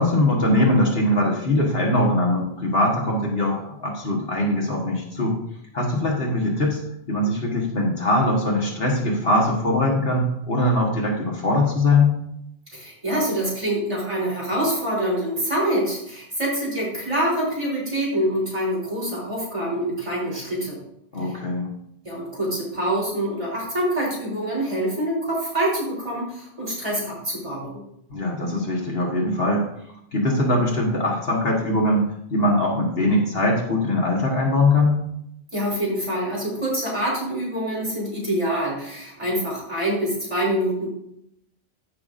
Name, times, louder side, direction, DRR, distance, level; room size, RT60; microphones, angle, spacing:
voice 1, 0.0-5.4 5.7-6.8 7.1-12.2 21.1-21.7 28.1-29.7 30.1-32.1 32.3-35.0, left 1 dB, 65° left, -1 dB, 1.8 m, -21 dB
voice 2, 12.7-20.8 22.0-27.8 35.5-40.9, right 1 dB, 30° right, -5 dB, 3.8 m, -25 dB
14.0 x 5.9 x 2.6 m, 0.77 s
omnidirectional pair, 1.1 m